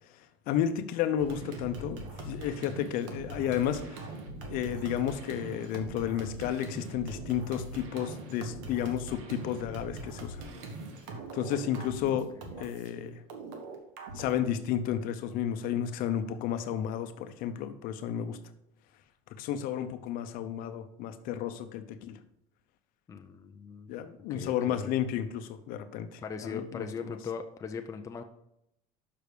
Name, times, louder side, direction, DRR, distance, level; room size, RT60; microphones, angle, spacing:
voice 1, 0.5-4.0 4.5-10.4 11.3-12.3 12.6-13.2 14.1-18.4 19.4-22.2 23.9-27.2, left 9 dB, 65° left, 10 dB, 0.8 m, -32 dB
sound 1, 1.2-12.9 13.3-14.3, right 2 dB, 90° right, 1.5 m, -42 dB
voice 2, 23.1-24.9 26.2-28.2, left 6 dB, 20° left, 5 dB, 0.5 m, -40 dB
6.7 x 5.8 x 5.0 m, 0.81 s
cardioid pair, 130°, 16 cm